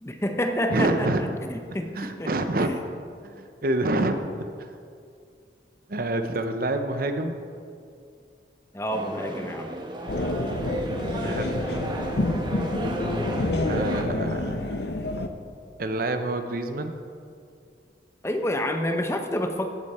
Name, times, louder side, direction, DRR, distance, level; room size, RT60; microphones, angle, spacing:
voice 1, 0.0-2.3 2.6-2.8 8.7-9.7 18.2-19.7, equal, 15° left, 5 dB, 0.7 m, -28 dB
voice 2, 0.7-1.4 1.9-2.7 3.2-4.2 4.6-4.7 5.9-7.4 11.2-11.6 13.7-14.8 15.8-16.9, right 2 dB, 55° right, 7 dB, 0.8 m, -27 dB
sound 1, 8.9-14.0, right 1 dB, 25° right, 1.1 m, -32 dB
sound 2, 10.1-15.3, left 2 dB, 70° left, 0.7 m, -28 dB
16.0 x 8.1 x 4.3 m, 2.3 s
head